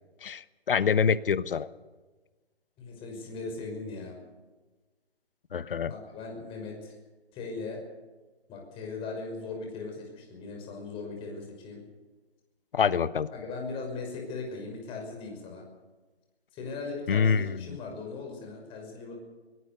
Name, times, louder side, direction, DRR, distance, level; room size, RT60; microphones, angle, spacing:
voice 1, 0.2-1.7 5.5-5.9 12.7-13.3 17.1-17.5, left 6 dB, 55° left, 15 dB, 1.2 m, -25 dB
voice 2, 2.8-4.2 5.9-7.0 7.3-7.8 8.5-11.8 13.3-15.6 16.5-19.1, left 3 dB, 15° left, 1 dB, 5.9 m, -38 dB
23.0 x 19.0 x 6.8 m, 1.2 s
figure-of-eight pair, 150°, 33 cm